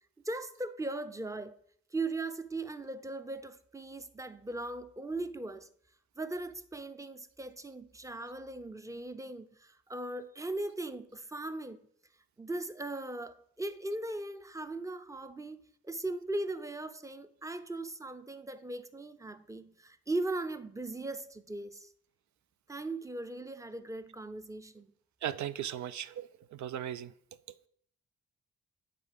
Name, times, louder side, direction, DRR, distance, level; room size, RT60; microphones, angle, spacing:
voice 1, 0.2-1.6 1.9-5.7 6.2-11.8 12.4-21.9 22.7-24.9, right 2 dB, 10° right, 0.6 m, -38 dB
voice 2, 25.2-27.1, right 10 dB, 55° right, 0.5 m, -37 dB
9.0 x 3.7 x 5.2 m
hypercardioid pair, 40°, 35 cm